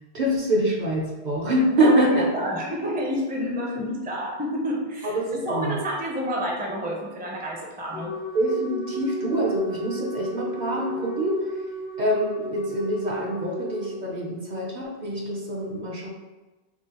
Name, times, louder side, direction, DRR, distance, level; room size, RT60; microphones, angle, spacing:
voice 1, 0.1-2.3 5.0-5.1 5.5-5.8 8.3-11.4 12.0-16.1, right 1 dB, 50° right, -2 dB, 0.7 m, -25 dB
voice 2, 1.8-8.1, equal, 10° right, -2 dB, 0.4 m, -29 dB
Wind instrument woodwind instrument, 7.9-14.0, right 1 dB, 90° left, 1.1 m, -35 dB
6.0 x 2.1 x 2.9 m, 1.2 s
omnidirectional pair, 1.0 m